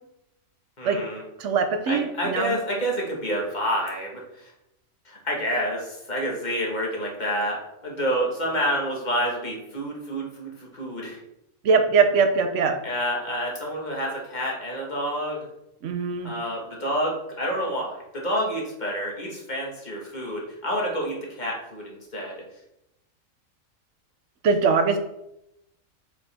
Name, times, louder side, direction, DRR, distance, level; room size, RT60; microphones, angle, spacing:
voice 1, 0.8-1.2 1.9-4.5 5.0-11.2 12.8-15.5 16.2-22.3, equal, 30° left, -2 dB, 1.7 m, -28 dB
voice 2, 1.4-2.5 11.6-12.8 15.8-16.3 24.4-25.0, right 5 dB, 65° right, 7 dB, 1.1 m, -21 dB
6.6 x 4.9 x 3.5 m, 0.84 s
omnidirectional pair, 1.5 m